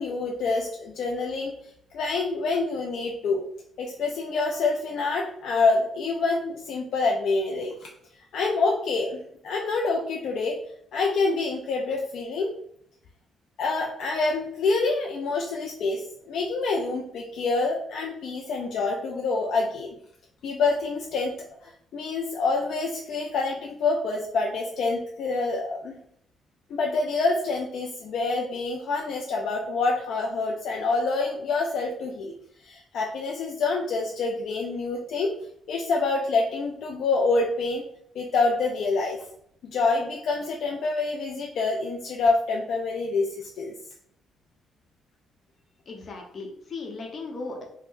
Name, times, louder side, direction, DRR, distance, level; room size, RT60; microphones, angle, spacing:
voice 1, 0.0-1.5 1.9-3.4 3.8-7.9 8.3-10.6 10.9-12.5 13.6-19.9 20.4-21.3 21.6-26.0 26.7-32.3 32.6-35.3 35.7-37.8 38.2-39.2 39.6-43.7, left 3 dB, 70° left, 0 dB, 0.3 m, -26 dB
voice 2, 45.9-47.6, left 3 dB, 50° left, 1 dB, 0.7 m, -37 dB
3.6 x 2.0 x 2.5 m, 0.70 s
cardioid pair, 90°, 0 cm